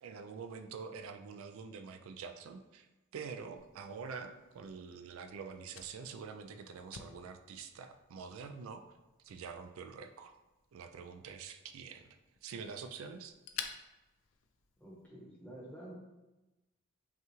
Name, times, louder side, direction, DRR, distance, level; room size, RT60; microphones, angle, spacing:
voice 1, 0.0-2.9 3.1-8.8 9.2-10.3 10.7-13.3, right 5 dB, 80° right, 8 dB, 0.3 m, -46 dB
Fire, 3.6-15.1, left 8 dB, 75° left, 0.4 m, -53 dB
voice 2, 14.8-15.9, right 1 dB, 5° left, -5 dB, 0.9 m, -49 dB
5.5 x 2.4 x 3.0 m, 1.0 s
head